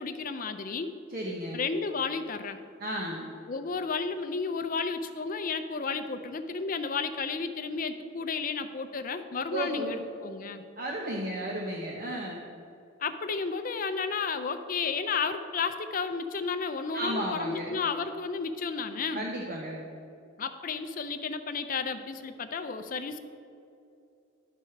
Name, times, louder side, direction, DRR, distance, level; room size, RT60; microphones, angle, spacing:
voice 1, 0.0-0.9 1.5-2.6 3.5-10.6 13.0-19.3 20.4-23.2, left 5 dB, 40° left, 9 dB, 0.4 m, -32 dB
voice 2, 1.1-1.6 2.8-3.3 9.5-10.0 10.8-12.4 16.9-17.8 19.1-19.9, right 1 dB, 45° right, -1 dB, 0.9 m, -34 dB
11.5 x 4.8 x 5.8 m, 2.6 s
head